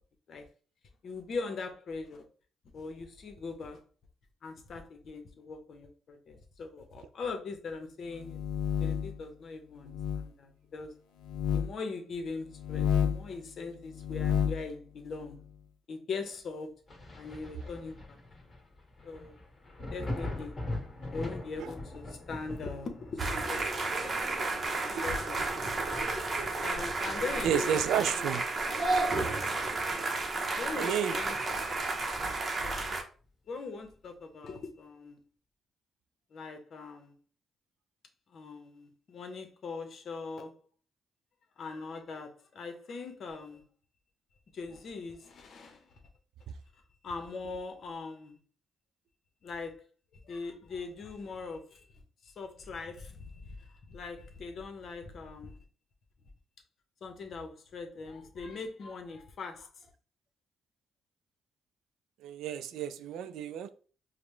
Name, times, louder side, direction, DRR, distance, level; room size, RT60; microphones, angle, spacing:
voice 1, 1.0-2.2 2.7-3.8 4.4-8.4 8.8-10.9 11.5-15.4 15.9-16.7 17.1-18.2 19.0-19.3 19.9-20.6 21.1-23.9 24.6-25.7 26.5-28.4 29.8-30.1 30.5-31.4 31.7-32.2 33.5-35.2 36.3-37.2 38.3-40.6 41.6-43.6 44.5-46.0 46.7-48.4 49.4-49.8 50.1-51.9 52.2-55.6 57.0-59.7, left 4 dB, 60° left, 0.8 m, -41 dB
sound 1, 8.2-9.2 9.9-10.2 11.2-11.7 12.6-13.3 13.9-14.6, left 8 dB, 90° left, 0.5 m, -30 dB
Thunder, 16.9-28.2 28.6-30.1 30.5-30.6 31.1-32.4 33.9-34.0, left 1 dB, 25° left, 1.7 m, -43 dB
sound 2, 23.2-33.0, right 3 dB, 35° right, 0.7 m, -32 dB
voice 2, 25.8-26.1 27.4-28.4 30.7-31.2 62.2-63.7, right 9 dB, 85° right, 0.3 m, -31 dB
5.0 x 2.1 x 3.1 m
cardioid pair, 90°, 0 cm